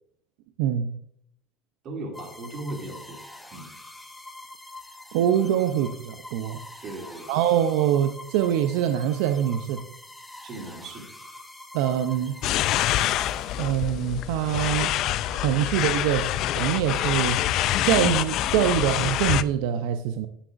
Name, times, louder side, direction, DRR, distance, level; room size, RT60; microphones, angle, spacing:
voice 1, 0.6-0.9 5.1-6.6 7.3-9.8 11.7-12.3 13.6-14.9 15.4-17.4 17.8-20.3, right 10 dB, 80° right, 8 dB, 0.5 m, -24 dB
voice 2, 1.8-3.2 3.5-3.7 6.8-7.4 10.4-11.1, right 2 dB, 45° right, 0 dB, 2.5 m, -37 dB
sound 1, 2.1-14.0, left 2 dB, 5° left, 1.0 m, -45 dB
sound 2, 12.4-19.4, left 12 dB, 55° left, 0.3 m, -26 dB
9.9 x 7.8 x 2.5 m, 0.68 s
supercardioid pair, 130°, 0 cm